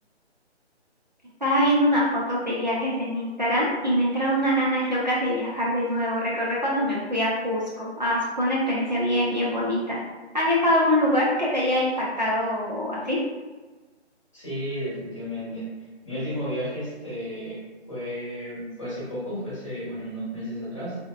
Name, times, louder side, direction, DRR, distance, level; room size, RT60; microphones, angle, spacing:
voice 1, 1.4-10.0 10.3-11.9 12.2-13.2, equal, 40° right, -6 dB, 0.5 m, -24 dB
voice 2, 14.3-15.7 16.0-17.6 17.9-21.0, equal, 25° left, -9 dB, 1.2 m, -33 dB
3.3 x 2.1 x 2.2 m, 1.3 s
figure-of-eight pair, 160°, 35 cm